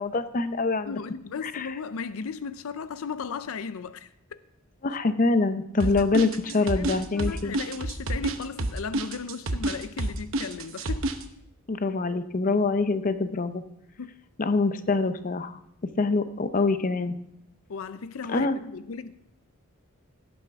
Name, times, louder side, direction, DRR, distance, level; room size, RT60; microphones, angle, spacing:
voice 1, 0.0-0.9 1.4-1.7 4.8-7.5 11.7-13.6 14.4-15.5 16.0-17.1 18.3-18.5, left 3 dB, 40° left, 0.6 m, -25 dB
voice 2, 0.9-4.4 5.8-6.1 6.4-11.1 14.0-14.2 17.7-19.1, left 5 dB, 85° left, 0.5 m, -36 dB
sound 1, 5.8-11.2, right 2 dB, 70° right, 0.9 m, -28 dB
17.0 x 8.9 x 3.5 m
head